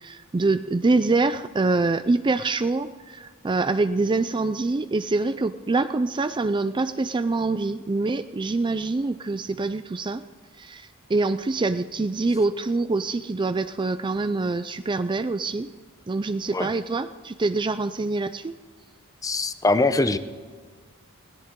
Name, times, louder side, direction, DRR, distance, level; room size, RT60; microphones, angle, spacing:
voice 1, 0.0-10.2 10.6-15.7 16.1-18.5, right 3 dB, 20° right, 11 dB, 0.4 m, -25 dB
voice 2, 19.2-20.2, left 2 dB, 15° left, 12 dB, 0.7 m, -22 dB
21.5 x 17.0 x 3.7 m, 1.5 s
head